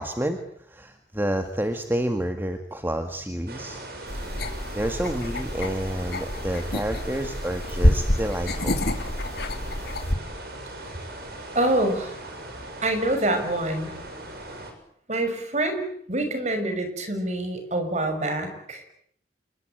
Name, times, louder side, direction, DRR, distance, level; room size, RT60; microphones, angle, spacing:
voice 1, 0.0-3.8 4.7-8.8, right 1 dB, 10° right, 6 dB, 1.9 m, -29 dB
sound 1, 3.5-14.7, right 2 dB, 60° right, 7.1 m, -39 dB
sound 2, 4.1-10.2, left 1 dB, 60° left, 3.1 m, -27 dB
voice 2, 11.5-12.2 12.8-13.9 15.1-15.8 16.1-18.8, right 1 dB, 40° right, 7 dB, 6.4 m, -26 dB
28.0 x 22.5 x 9.2 m, 0.69 s
head